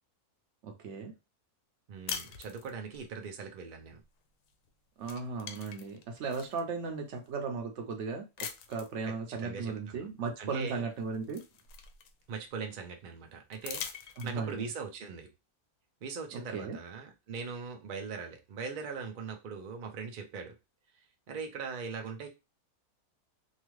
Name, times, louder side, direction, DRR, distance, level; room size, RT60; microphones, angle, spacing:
voice 1, 0.6-1.1 5.0-11.4 14.2-14.6 16.3-16.8, right 4 dB, 60° right, 3 dB, 0.8 m, -36 dB
voice 2, 1.9-4.0 9.0-10.1 10.4-10.8 12.3-15.3 16.0-20.5 21.3-22.3, right 5 dB, 80° right, 4 dB, 0.4 m, -41 dB
sound 1, 2.1-3.1 4.5-4.7 5.0-6.6 7.2-7.3 8.4-9.0 10.4-10.5 10.9-12.4 13.5-14.6, left 7 dB, 70° left, 0.9 m, -42 dB
2.8 x 2.4 x 3.0 m, 0.26 s
omnidirectional pair, 1.6 m